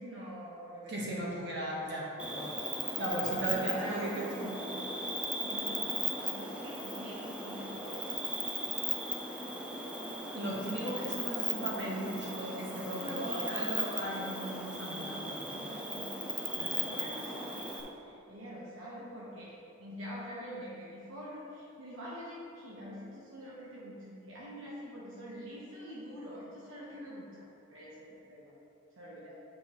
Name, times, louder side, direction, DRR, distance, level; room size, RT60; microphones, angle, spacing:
voice 1, 0.0-1.2 3.5-4.1 5.4-8.2 9.7-10.0 12.9-13.9 14.9-15.2 15.5-16.2 16.6-17.7 18.0-19.5 19.8-28.5 29.0-29.4, equal, 75° right, -6 dB, 1.0 m, -45 dB
voice 2, 0.9-2.5 3.0-4.6 10.3-13.2 13.5-15.4 16.6-17.1, right 1 dB, 55° right, -4 dB, 1.3 m, -37 dB
Cricket, 2.2-17.8, right 1 dB, 5° right, 0.5 m, -37 dB
8.7 x 5.3 x 3.0 m, 2.6 s
head